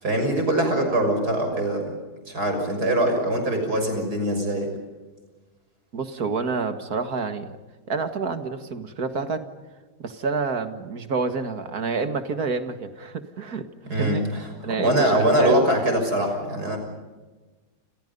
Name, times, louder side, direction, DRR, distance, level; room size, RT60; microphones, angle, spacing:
voice 1, 0.0-1.9 2.3-4.7 13.9-16.8, right 1 dB, 90° right, 4 dB, 6.9 m, -23 dB
voice 2, 5.9-7.6 7.9-9.4 10.0-14.2 14.6-15.6, right 4 dB, 75° right, 8 dB, 2.4 m, -28 dB
29.5 x 28.5 x 5.5 m, 1.3 s
omnidirectional pair, 1.6 m